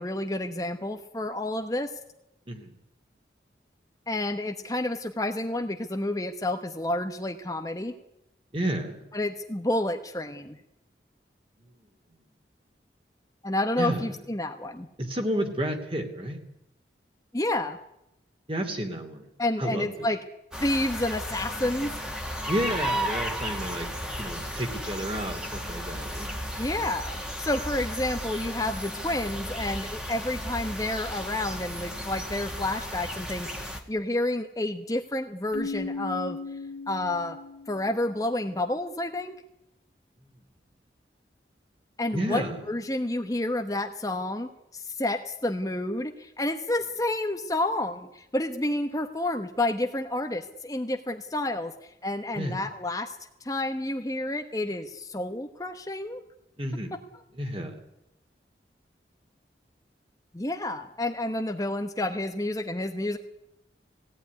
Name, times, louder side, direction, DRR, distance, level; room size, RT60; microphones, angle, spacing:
voice 1, 0.0-1.9 4.1-7.9 9.1-10.6 13.4-14.9 17.3-17.8 19.4-20.2 20.6-21.9 26.6-36.4 36.9-37.4 37.7-39.4 42.0-53.2 53.4-56.2 56.9-57.0 60.3-63.2, left 1 dB, 20° left, 5 dB, 1.1 m, -30 dB
voice 2, 8.5-9.0 11.6-11.8 13.8-14.2 15.0-16.4 18.5-19.2 19.6-20.1 22.5-23.9 24.1-26.4 40.2-40.3 42.1-42.7 52.3-52.7 56.6-56.9 57.3-57.8, right 1 dB, 30° right, 5 dB, 2.9 m, -31 dB
sound 1, 20.5-33.8, equal, 5° right, 2.1 m, -34 dB
Keyboard (musical), 35.5-38.2, left 3 dB, 80° left, 2.5 m, -37 dB
19.5 x 17.5 x 9.6 m, 0.86 s
head